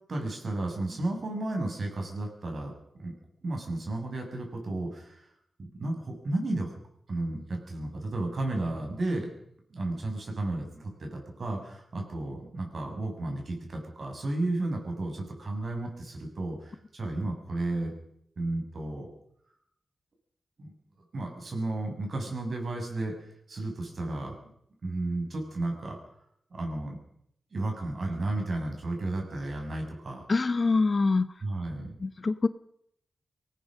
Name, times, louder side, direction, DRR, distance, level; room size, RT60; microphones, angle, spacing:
voice 1, 0.1-3.1 3.4-5.3 5.6-6.8 7.1-9.3 9.7-17.9 18.4-19.1 20.6-20.7 21.1-23.1 23.5-24.3 24.8-26.0 26.5-27.0 27.5-30.2 31.4-32.0, right 2 dB, 50° right, 2 dB, 7.2 m, -33 dB
voice 2, 30.3-31.3 32.0-32.5, left 3 dB, 40° left, 13 dB, 0.9 m, -24 dB
24.5 x 19.0 x 6.5 m, 0.71 s
wide cardioid pair, 110°, 0 cm